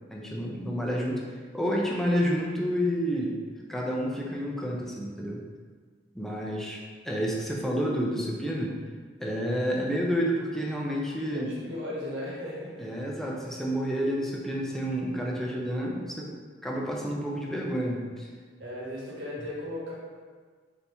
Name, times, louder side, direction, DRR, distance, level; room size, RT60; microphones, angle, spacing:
voice 1, 0.1-1.2 1.5-3.4 3.7-5.4 6.1-8.7 9.2-11.5 12.8-16.3 16.6-18.3, equal, ahead, -3 dB, 0.5 m, -29 dB
voice 2, 11.3-12.7 18.6-19.9, left 1 dB, 85° right, -6 dB, 1.3 m, -36 dB
4.1 x 2.9 x 3.4 m, 1.5 s
head